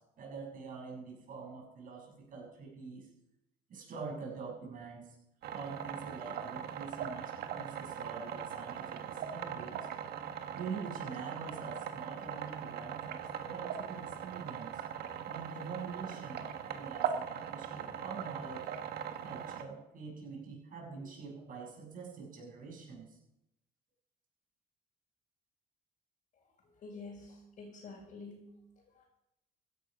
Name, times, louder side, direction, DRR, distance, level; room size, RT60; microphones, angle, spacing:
voice 1, 0.0-3.1 3.7-5.2 5.5-9.8 10.5-14.8 15.3-18.7 19.2-23.2, right 5 dB, 55° right, -1 dB, 6.3 m, -45 dB
sound 1, 5.4-19.6, right 8 dB, 70° right, 1.5 m, -40 dB
voice 2, 26.8-28.4 28.9-29.0, left 3 dB, 50° left, -3 dB, 4.4 m, -48 dB
15.5 x 10.5 x 5.3 m, 0.87 s
cardioid pair, 110°, 17 cm